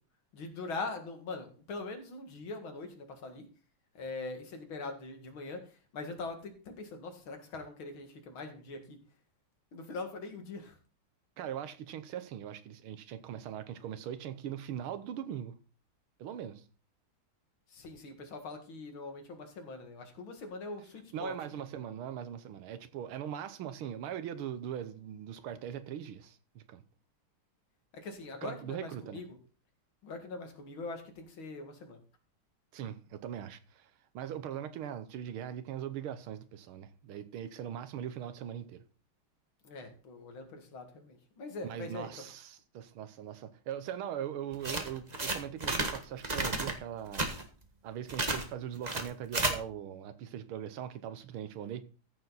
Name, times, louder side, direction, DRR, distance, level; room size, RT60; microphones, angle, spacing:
voice 1, 0.3-3.5 4.0-5.6 5.9-9.0 9.7-10.7 17.7-21.3 27.9-29.3 30.0-32.0 39.6-42.3, left 3 dB, 70° left, 2.7 m, -42 dB
voice 2, 11.4-15.5 16.2-16.6 21.1-26.8 28.4-29.2 32.7-38.8 41.6-47.3 47.8-51.8, right 9 dB, 85° right, 1.8 m, -40 dB
sound 1, 44.5-46.0 46.2-46.7 47.1-47.4 48.1-48.5 48.8-49.5, right 2 dB, 25° right, 1.3 m, -32 dB
14.5 x 7.1 x 4.1 m
omnidirectional pair, 2.3 m